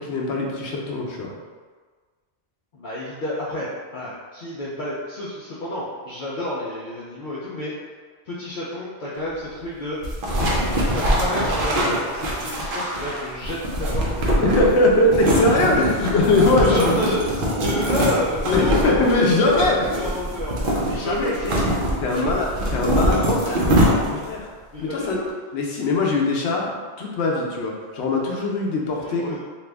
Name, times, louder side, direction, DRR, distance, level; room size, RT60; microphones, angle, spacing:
voice 1, 0.0-1.3 14.4-16.9 18.5-19.9 20.7-21.3 22.0-23.7 24.0-24.5 24.8-25.2 25.5-29.4, left 2 dB, 85° left, -1 dB, 0.9 m, -21 dB
voice 2, 2.7-7.7 8.3-10.0 10.9-14.8 16.6-17.2 17.6-19.7 19.9-20.6 20.9-21.7 22.0-22.3 24.7-25.3 29.0-29.4, left 1 dB, 55° left, -8 dB, 0.6 m, -30 dB
sound 1, 10.0-24.4, equal, 60° right, 0.8 m, -23 dB
2.8 x 2.4 x 3.3 m, 1.5 s
omnidirectional pair, 1.1 m